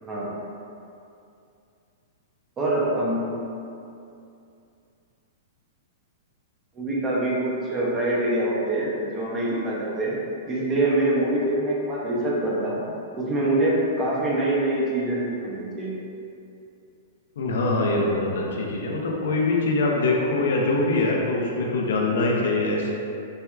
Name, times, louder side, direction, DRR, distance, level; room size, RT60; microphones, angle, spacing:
voice 1, 0.0-0.3 2.6-3.2 6.8-10.2 10.5-12.8 13.1-15.9, right 1 dB, 15° right, -5 dB, 0.4 m, -24 dB
voice 2, 17.4-22.9, left 2 dB, 75° left, -1 dB, 0.5 m, -23 dB
4.2 x 2.3 x 2.3 m, 2.6 s
supercardioid pair, 170°, 0 cm